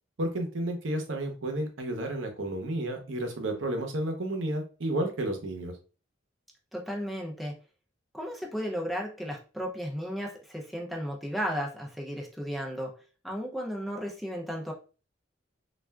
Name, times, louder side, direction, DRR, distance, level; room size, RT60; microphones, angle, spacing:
voice 1, 0.2-5.7, right 1 dB, 80° right, 4 dB, 0.8 m, -31 dB
voice 2, 6.7-7.6 8.1-12.9 13.2-14.7, equal, ahead, -1 dB, 0.5 m, -34 dB
3.3 x 2.4 x 2.2 m, 0.35 s
head